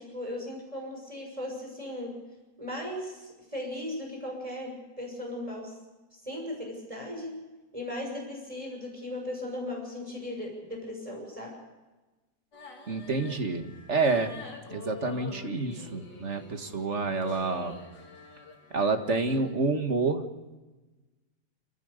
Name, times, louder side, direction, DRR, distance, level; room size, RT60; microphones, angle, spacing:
voice 1, 0.0-2.1 2.6-5.7 6.2-7.3 7.7-11.5, left 1 dB, 20° right, 0 dB, 6.4 m, -37 dB
sound 1, 12.5-19.5, left 3 dB, 75° left, 3.4 m, -47 dB
voice 2, 12.9-14.3 14.7-17.8 18.7-20.2, right 3 dB, 45° right, 6 dB, 2.1 m, -28 dB
27.0 x 15.5 x 6.7 m, 1.2 s
omnidirectional pair, 1.8 m